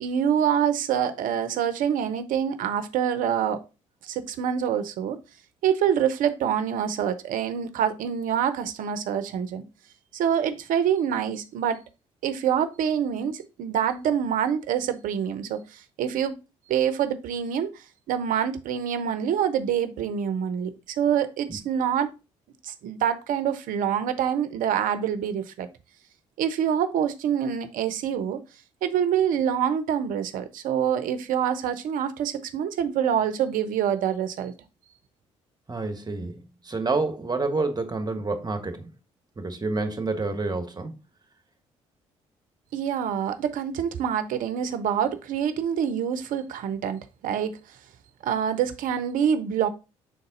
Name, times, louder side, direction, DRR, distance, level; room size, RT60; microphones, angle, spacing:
voice 1, 0.0-3.6 4.0-5.2 5.6-9.6 10.1-11.8 12.2-16.4 16.7-22.1 22.6-25.7 26.4-28.4 28.8-34.5 42.7-47.6 48.2-49.7, right 8 dB, 65° right, 0.7 m, -26 dB
voice 2, 35.7-38.9 39.4-40.9, right 3 dB, 25° right, 1.3 m, -28 dB
6.5 x 4.0 x 3.8 m
hypercardioid pair, 50°, 15 cm